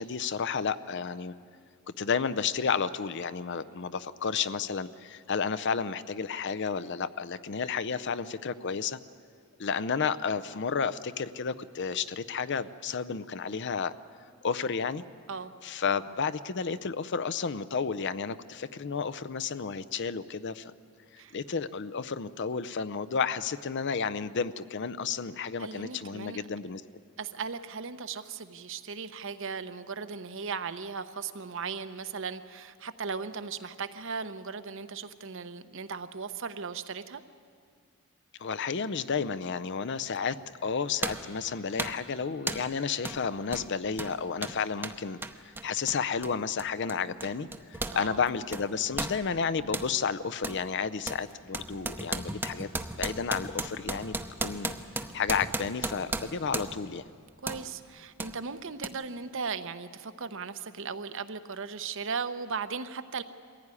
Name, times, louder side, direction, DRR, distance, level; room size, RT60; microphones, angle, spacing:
voice 1, 0.0-1.3 2.0-9.0 9.6-13.9 14.4-15.0 15.6-20.7 21.3-26.8 38.4-40.4 40.6-45.2 45.4-54.7 55.1-57.0, left 6 dB, 55° left, 15 dB, 0.6 m, -32 dB
voice 2, 25.6-26.4 27.2-37.2 47.9-48.2 57.4-63.2, right 5 dB, 60° right, 11 dB, 0.9 m, -37 dB
sound 1, 40.2-40.3 41.0-41.3 41.8-42.1 42.5-42.7 43.0-43.2 43.5-48.0 48.3-49.9 50.4-50.6 51.1-56.9 57.5-57.7 58.2-58.3 58.8-58.9, right 2 dB, 10° right, 0.7 m, -35 dB
22.5 x 15.5 x 9.8 m, 2.2 s
head